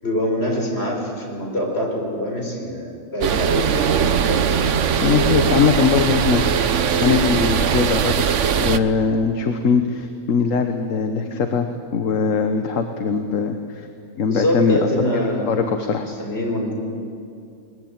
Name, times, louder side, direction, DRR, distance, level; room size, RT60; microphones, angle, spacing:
voice 1, 0.0-4.4 14.2-15.7 16.1-16.7, left 1 dB, 50° left, 0 dB, 5.1 m, -24 dB
sound 1, 3.2-8.8, right 7 dB, 65° right, 1.2 m, -20 dB
voice 2, 5.0-8.2 8.5-11.7 11.9-13.9 14.2-14.8 15.5-16.1, left 6 dB, 70° left, 6 dB, 1.5 m, -21 dB
21.5 x 21.0 x 8.8 m, 2.4 s
omnidirectional pair, 1.4 m